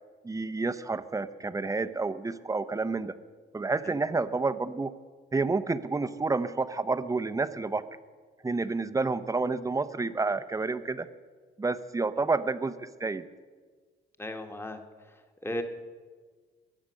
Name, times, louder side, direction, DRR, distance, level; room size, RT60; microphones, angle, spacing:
voice 1, 0.2-3.1 3.5-4.9 5.3-7.8 8.4-11.1 11.6-13.2, right 3 dB, 15° right, 12 dB, 0.7 m, -29 dB
voice 2, 14.2-14.8 15.4-15.6, left 1 dB, 10° left, 5 dB, 1.5 m, -35 dB
21.5 x 7.4 x 6.5 m, 1.5 s
cardioid pair, 90°, 20 cm